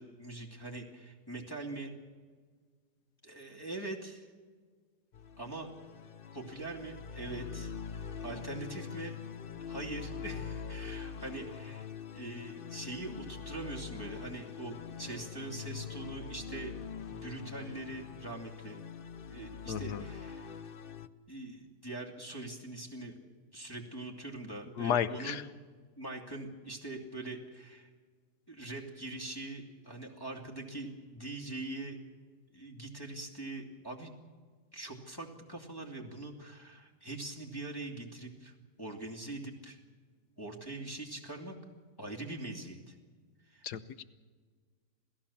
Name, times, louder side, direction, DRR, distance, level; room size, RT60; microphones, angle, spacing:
voice 1, 0.0-1.9 3.2-4.3 5.4-5.7 6.3-7.7 8.2-9.1 9.7-11.9 12.1-16.7 17.1-18.8 19.3-20.4 21.3-23.1 23.5-25.4 26.0-27.9 28.5-32.0 32.5-34.1 34.7-39.8 40.4-41.5 42.0-43.0 43.5-43.6, right 2 dB, 15° left, -2 dB, 2.6 m, -42 dB
sound 1, 5.1-21.1, left 7 dB, 55° left, 0.6 m, -44 dB
voice 2, 19.7-20.0 24.8-25.4 43.6-44.0, left 8 dB, 75° left, 12 dB, 1.5 m, -33 dB
27.5 x 16.5 x 7.2 m, 1.5 s
omnidirectional pair, 1.8 m